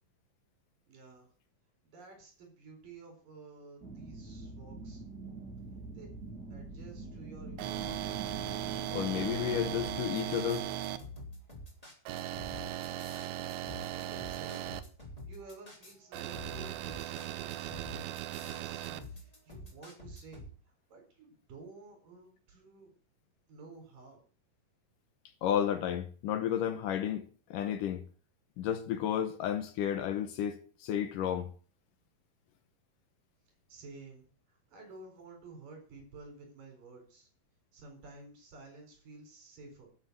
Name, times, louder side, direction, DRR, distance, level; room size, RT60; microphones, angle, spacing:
voice 1, 0.9-1.3 1.8-5.0 6.0-6.1 6.5-8.0 13.9-14.7 15.3-20.5 20.9-22.9 23.5-24.2 33.7-37.3 37.7-39.9, right 3 dB, 65° right, 5.9 m, -52 dB
sound 1, 3.8-9.9, right 3 dB, 30° right, 2.2 m, -45 dB
sound 2, 7.6-11.0 12.1-14.8 16.1-19.0, right 12 dB, 90° right, 2.8 m, -38 dB
voice 2, 8.9-10.7 25.4-28.0 28.6-31.5, left 10 dB, 70° left, 2.3 m, -32 dB
sound 3, 9.8-20.5, left 2 dB, 10° left, 3.4 m, -48 dB
12.0 x 6.3 x 8.0 m
omnidirectional pair, 4.2 m